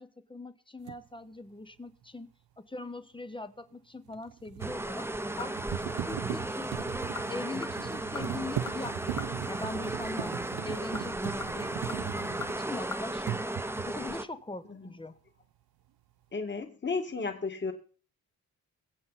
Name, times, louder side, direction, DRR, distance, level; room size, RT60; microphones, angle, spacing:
voice 1, 0.0-5.1 5.4-6.9 7.3-10.3 10.6-13.5 13.9-15.2, left 2 dB, 15° left, 11 dB, 1.0 m, -42 dB
sound 1, 0.9-1.0 4.1-12.9 13.2-14.0, right 11 dB, 80° right, 0.8 m, -38 dB
sound 2, 4.6-14.2, right 1 dB, 5° right, 0.7 m, -35 dB
sound 3, 5.0-5.8 6.1-6.2 6.9-7.3 7.6-9.4 10.7-13.0 13.3-13.4, left 4 dB, 55° left, 1.9 m, -44 dB
voice 2, 16.3-17.7, left 4 dB, 30° left, 5 dB, 2.1 m, -33 dB
22.5 x 7.8 x 4.1 m, 0.41 s
cardioid pair, 95°, 36 cm